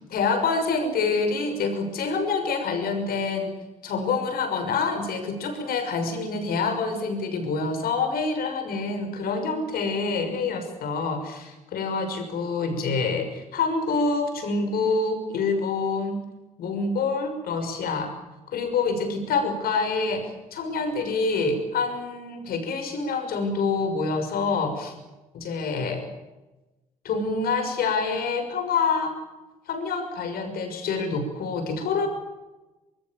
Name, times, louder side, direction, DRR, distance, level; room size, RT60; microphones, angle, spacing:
voice 1, 0.1-16.2 16.6-18.1 18.5-24.9 25.3-26.0 27.0-29.2 29.7-32.1, left 4 dB, 55° left, 6 dB, 6.2 m, -26 dB
25.0 x 23.0 x 7.3 m, 1.1 s
figure-of-eight pair, 50°, 18 cm